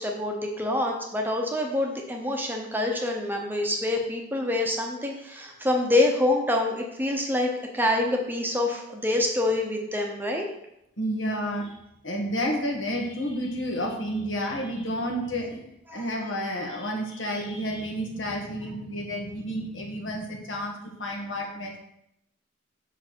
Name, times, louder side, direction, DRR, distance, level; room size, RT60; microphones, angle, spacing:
voice 1, 0.0-10.5 15.9-16.0, left 1 dB, 10° right, 1 dB, 0.9 m, -26 dB
voice 2, 11.0-11.7 12.0-21.8, equal, 70° left, 1 dB, 1.7 m, -30 dB
6.1 x 4.6 x 6.2 m, 0.80 s
head